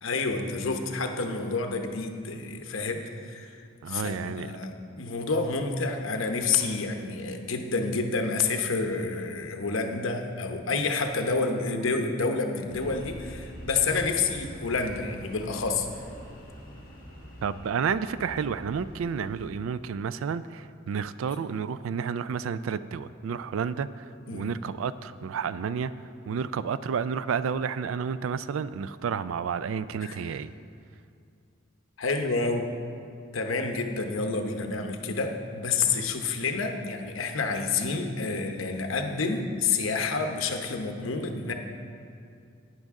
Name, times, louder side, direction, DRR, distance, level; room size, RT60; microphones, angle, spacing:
voice 1, 0.0-3.6 3.9-15.9 24.3-24.5 30.0-30.2 32.0-32.7 33.3-41.5, left 4 dB, 75° left, 5 dB, 0.9 m, -29 dB
voice 2, 3.8-4.5 17.4-24.0 24.3-25.9 26.3-30.5, right 6 dB, 80° right, 15 dB, 0.3 m, -31 dB
sound 1, 12.7-19.5, equal, 45° left, 1.9 m, -45 dB
11.5 x 9.4 x 3.6 m, 2.4 s
head